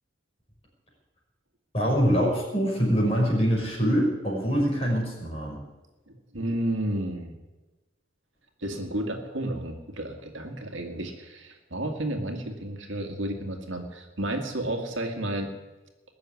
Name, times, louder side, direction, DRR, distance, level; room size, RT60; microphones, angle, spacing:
voice 1, 1.7-5.6, equal, 30° left, -2 dB, 5.5 m, -24 dB
voice 2, 6.1-7.4 8.6-15.5, right 1 dB, 60° right, 4 dB, 2.1 m, -32 dB
20.5 x 7.0 x 9.7 m, 1.1 s
head